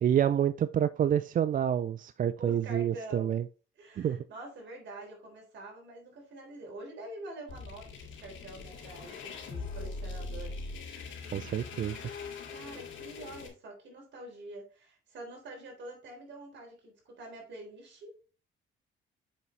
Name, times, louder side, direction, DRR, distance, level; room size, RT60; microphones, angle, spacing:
voice 1, 0.0-3.4 4.0-4.2 11.3-12.0, right 9 dB, 45° right, 0.4 m, -28 dB
voice 2, 2.4-3.3 3.8-7.9 8.2-10.6 12.0-18.3, right 2 dB, 65° right, 3.8 m, -46 dB
sound 1, 7.5-13.5, left 4 dB, 75° left, 2.2 m, -41 dB
7.2 x 5.4 x 3.2 m
cardioid pair, 90°, 20 cm